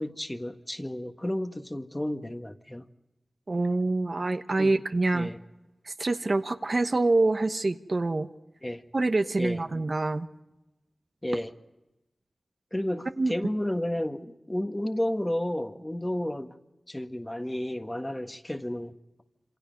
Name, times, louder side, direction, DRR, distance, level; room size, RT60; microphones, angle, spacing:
voice 1, 0.0-2.9 4.6-4.7 5.1-5.4 8.6-8.8 9.4-9.6 11.2-11.5 12.7-16.5 16.9-18.9, left 1 dB, 15° left, 1.6 m, -32 dB
voice 2, 3.5-5.3 5.9-8.3 8.9-10.3 13.2-13.3, right 2 dB, 50° right, 1.1 m, -26 dB
27.5 x 27.0 x 5.3 m
cardioid pair, 50°, 0 cm